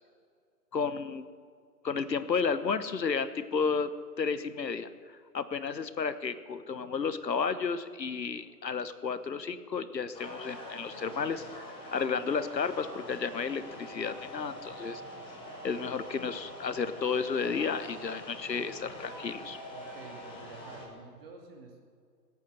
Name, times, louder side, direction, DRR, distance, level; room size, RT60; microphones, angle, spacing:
voice 1, 0.7-1.3 1.8-3.9 4.2-4.9 5.3-11.6 11.9-15.0 15.6-19.6, left 5 dB, 80° left, 12 dB, 1.3 m, -32 dB
sound 1, 10.1-20.9, left 1 dB, 10° left, 1.9 m, -45 dB
voice 2, 19.7-21.8, right 4 dB, 35° right, 1 dB, 2.9 m, -49 dB
18.0 x 8.5 x 7.7 m, 2.1 s
figure-of-eight pair, 150°, 49 cm